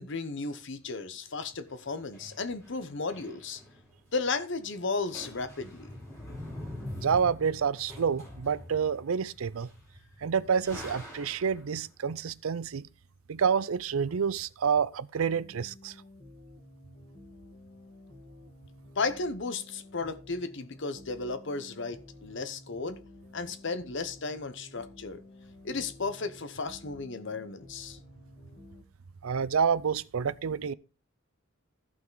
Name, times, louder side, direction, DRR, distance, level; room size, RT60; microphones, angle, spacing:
voice 1, 0.0-3.6 4.1-5.9 6.3-6.4 19.0-23.0 23.3-25.2 25.6-28.0, left 4 dB, 60° left, 0.9 m, -34 dB
sound 1, 1.4-4.2 4.5-4.8 5.1-11.7, left 1 dB, 15° left, 4.3 m, -45 dB
voice 2, 6.9-9.7 10.2-12.9 13.3-15.9 29.2-30.7, right 6 dB, 85° right, 0.5 m, -28 dB
sound 2, 15.2-28.8, left 1 dB, 40° left, 2.7 m, -52 dB
14.0 x 5.8 x 3.9 m
head